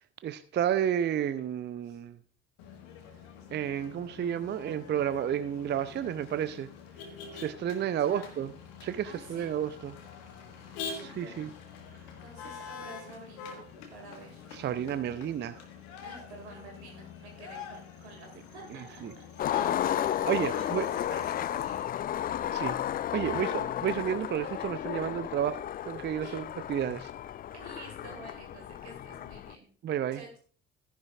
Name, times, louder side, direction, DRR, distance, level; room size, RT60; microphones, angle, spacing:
voice 1, 0.2-2.2 3.5-6.7 7.3-8.5 8.8-10.0 10.9-11.5 14.5-15.6 19.0-19.1 19.5-19.7 20.2-20.9 22.5-22.8 23.1-23.5 23.8-25.6 25.9-27.1 29.8-30.2, right 9 dB, 30° right, 0.5 m, -31 dB
Motor vehicle (road), 2.6-21.8, left 6 dB, 65° left, 1.5 m, -45 dB
voice 2, 7.8-8.4 9.0-9.5 10.7-11.5 12.2-13.7 13.9-14.5 16.0-18.8 19.8-22.3 22.6-22.7 23.2-23.5 26.2-26.4 27.5-29.7 30.1-30.4, right 3 dB, 80° right, 2.2 m, -49 dB
Skateboard, 19.4-29.5, left 11 dB, 30° left, 0.3 m, -33 dB
13.0 x 10.5 x 2.4 m
figure-of-eight pair, 45°, 33 cm